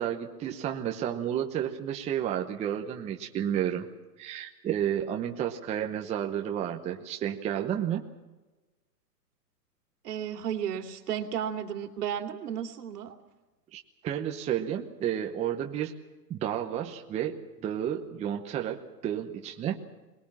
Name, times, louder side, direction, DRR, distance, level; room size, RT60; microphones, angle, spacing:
voice 1, 0.0-3.9 4.2-8.0 13.7-15.9 16.3-19.8, right 10 dB, 15° right, 3 dB, 0.9 m, -31 dB
voice 2, 10.0-13.2, right 9 dB, 70° right, 5 dB, 2.8 m, -33 dB
22.5 x 19.5 x 7.4 m, 1.2 s
hypercardioid pair, 145°, 49 cm